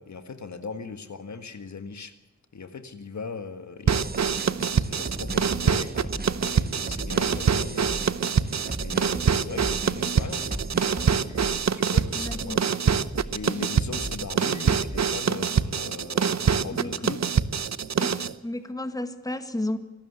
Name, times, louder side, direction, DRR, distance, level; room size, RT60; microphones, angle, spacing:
voice 1, 0.0-2.1 2.5-12.9 13.3-17.2 18.1-18.3, left 5 dB, 70° left, 9 dB, 1.8 m, -40 dB
sound 1, 3.9-11.2, right 3 dB, 35° right, 1.3 m, -38 dB
sound 2, 3.9-18.3, right 7 dB, 65° right, 0.9 m, -25 dB
sound 3, 5.2-15.0, equal, 5° right, 3.3 m, -40 dB
voice 2, 12.1-12.6 16.8-16.9 18.0-19.8, left 1 dB, 10° left, 9 dB, 1.9 m, -32 dB
25.5 x 12.5 x 8.2 m, 1.1 s
wide cardioid pair, 80°, 29 cm